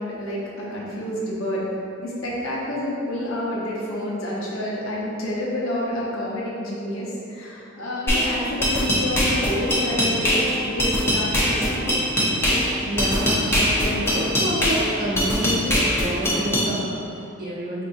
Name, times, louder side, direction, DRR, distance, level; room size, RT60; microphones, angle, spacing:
voice 1, 0.0-11.9, left 1 dB, 80° left, -5 dB, 0.8 m, -29 dB
sound 1, 8.1-16.7, equal, 10° left, 0.6 m, -22 dB
voice 2, 12.8-17.8, equal, 50° right, -7 dB, 0.9 m, -28 dB
4.8 x 2.8 x 2.6 m, 2.6 s
head